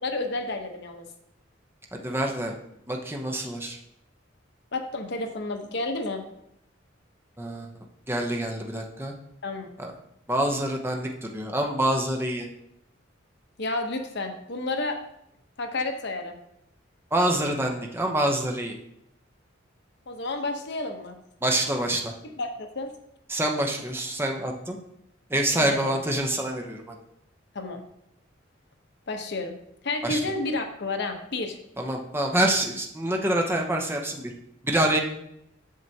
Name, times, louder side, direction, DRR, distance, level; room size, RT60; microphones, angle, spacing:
voice 1, 0.0-1.0 4.7-6.2 9.4-9.7 13.6-15.0 15.6-16.4 20.1-21.2 22.4-22.9 25.5-25.8 27.5-27.8 29.1-29.6 29.8-31.6, left 2 dB, 60° left, 4 dB, 0.9 m, -30 dB
voice 2, 1.9-2.5 2.9-3.8 7.4-7.7 8.1-9.1 9.8-9.9 10.3-12.5 17.1-18.8 21.4-22.1 23.3-24.8 25.3-26.9 30.0-30.2 31.8-34.3 34.6-35.0, right 1 dB, 10° right, 1 dB, 0.8 m, -26 dB
7.6 x 6.6 x 2.8 m, 0.77 s
head